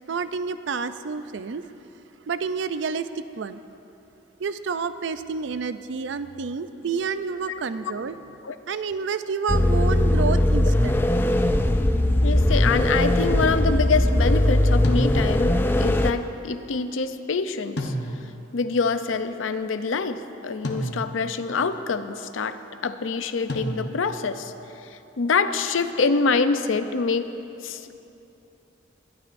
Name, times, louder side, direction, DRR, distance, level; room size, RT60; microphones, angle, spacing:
voice 1, 0.1-1.7 2.3-3.6 4.4-8.2 8.7-11.0, right 5 dB, 70° right, 12 dB, 0.4 m, -29 dB
sound 1, 9.5-16.1, left 1 dB, 10° left, 0.3 m, -20 dB
voice 2, 12.2-17.9 18.5-24.5 24.8-27.3 27.6-27.9, left 4 dB, 85° left, 10 dB, 0.6 m, -26 dB
sound 2, 14.8-15.6 17.8-18.5 20.6-21.4 23.5-24.3, equal, 60° left, 1.0 m, -31 dB
21.0 x 12.5 x 2.6 m, 2.9 s
head